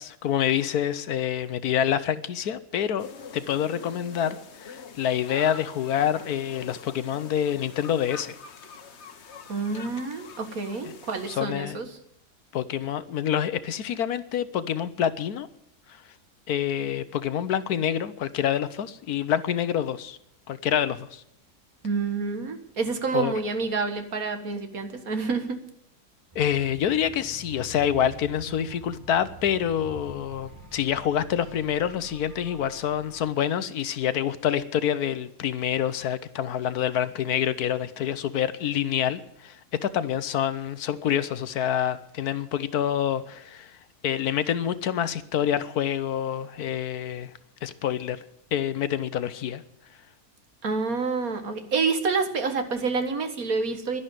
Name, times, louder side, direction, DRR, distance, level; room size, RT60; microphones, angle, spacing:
voice 1, 0.0-3.1 3.3-8.4 11.3-11.8 12.5-15.5 15.9-16.0 16.5-20.2 20.5-21.2 23.1-23.3 26.3-43.8 44.0-47.3 47.6-48.2 48.5-49.6, left 9 dB, 70° left, 14 dB, 1.3 m, -27 dB
sound 1, 3.0-11.4, left 5 dB, 45° left, 1.2 m, -44 dB
voice 2, 9.5-11.9 21.8-25.6 50.6-54.0, right 4 dB, 60° right, 8 dB, 2.0 m, -28 dB
sound 2, 26.3-33.3, right 3 dB, 15° right, 1.0 m, -46 dB
11.5 x 11.0 x 9.2 m, 0.77 s
omnidirectional pair, 1.7 m